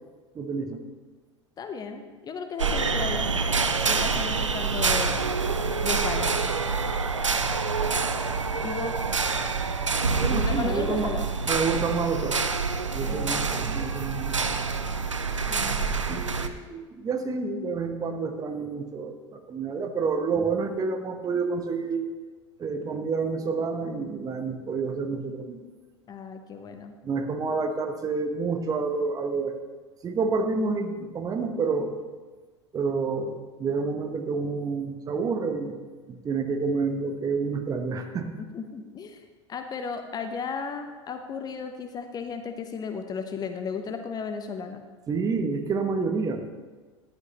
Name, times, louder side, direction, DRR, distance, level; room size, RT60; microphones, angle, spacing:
voice 1, 0.3-0.8 8.1-8.2 10.2-11.1 11.5-12.5 12.9-14.5 16.1-22.1 22.6-25.6 27.0-29.5 30.0-31.9 32.7-35.8 36.1-38.3 45.1-46.4, right 4 dB, 25° right, 5 dB, 1.1 m, -29 dB
voice 2, 1.6-3.5 3.8-5.3 5.8-6.5 8.6-9.0 10.3-11.3 13.0-13.5 15.5-15.8 26.1-26.9 38.4-44.8, left 5 dB, 25° left, 7 dB, 0.8 m, -35 dB
sound 1, 2.6-16.5, right 4 dB, 85° right, 0.6 m, -26 dB
14.5 x 11.0 x 3.0 m, 1.3 s
figure-of-eight pair, 80°, 15 cm